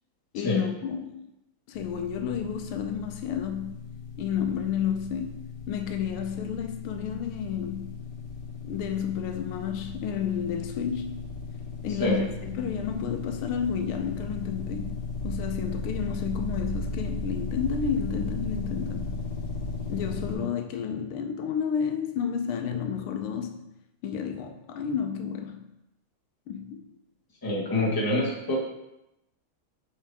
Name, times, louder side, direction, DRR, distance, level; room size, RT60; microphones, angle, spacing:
voice 1, 0.3-1.1 1.7-3.7 4.2-5.4 5.7-8.0 8.6-11.2 11.8-15.0 15.2-19.2 19.9-23.7 24.0-25.7 26.5-26.9, left 7 dB, 85° left, 6 dB, 1.6 m, -31 dB
sound 1, 1.7-20.4, left 3 dB, 60° left, 1.8 m, -36 dB
voice 2, 27.4-28.6, left 1 dB, 10° left, -4 dB, 1.2 m, -26 dB
7.4 x 4.8 x 3.5 m, 0.87 s
omnidirectional pair, 2.3 m